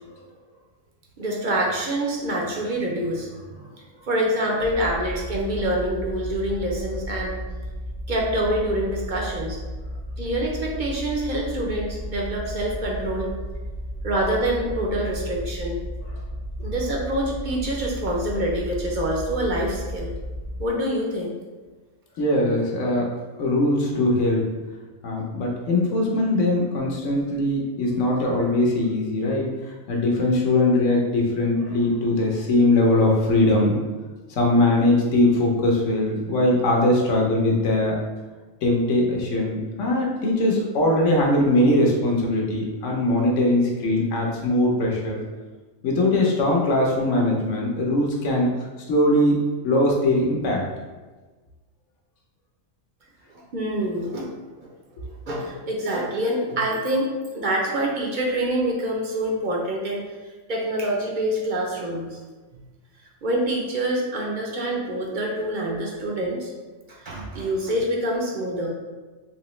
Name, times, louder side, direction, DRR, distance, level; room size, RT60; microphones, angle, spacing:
voice 1, 1.2-3.6 4.1-7.4 8.1-9.6 10.2-13.3 14.0-15.8 16.6-20.1 20.6-21.4 53.5-54.3 54.6-54.7 55.3-57.1 57.3-60.0 60.5-62.2 63.2-66.5 66.9-68.7, right 1 dB, 55° right, -2 dB, 0.6 m, -26 dB
sound 1, 4.6-20.7, equal, 55° left, 0.6 m, -34 dB
voice 2, 22.2-23.1 23.4-24.5 25.0-33.8 34.3-38.0 38.6-45.2 45.8-48.5 48.9-49.4 49.6-50.6, left 1 dB, 70° left, -1 dB, 1.1 m, -21 dB
3.4 x 2.9 x 3.1 m, 1.3 s
omnidirectional pair, 1.4 m